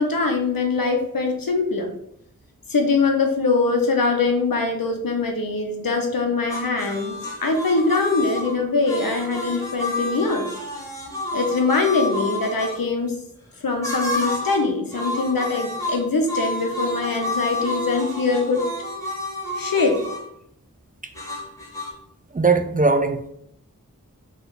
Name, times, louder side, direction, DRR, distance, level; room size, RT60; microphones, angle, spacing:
voice 1, 0.0-1.9 2.7-10.5 11.3-13.1 13.6-18.7 19.5-20.0, left 3 dB, 85° left, 4 dB, 0.8 m, -22 dB
sound 1, 6.5-12.8 13.8-14.7 14.9-20.3 21.1-21.9, left 1 dB, 10° left, 1.3 m, -30 dB
voice 2, 22.3-23.3, right 4 dB, 25° right, 6 dB, 0.4 m, -19 dB
3.3 x 3.1 x 3.9 m, 0.73 s
wide cardioid pair, 45°, 33 cm